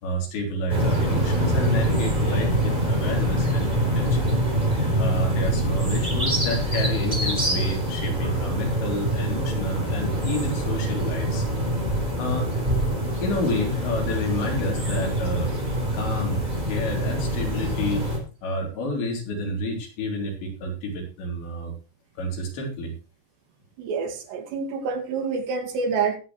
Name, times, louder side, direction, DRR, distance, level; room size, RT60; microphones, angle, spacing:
voice 1, 0.0-4.3 5.0-11.5 12.2-12.5 13.2-15.5 15.9-18.0 18.4-21.7 22.2-22.9, equal, 90° left, 1 dB, 5.6 m, -29 dB
sound 1, 0.7-18.2, right 1 dB, 10° right, 3.9 m, -25 dB
voice 2, 23.8-26.2, right 5 dB, 80° right, 4 dB, 4.3 m, -27 dB
19.5 x 8.5 x 3.2 m, 0.35 s
omnidirectional pair, 4.9 m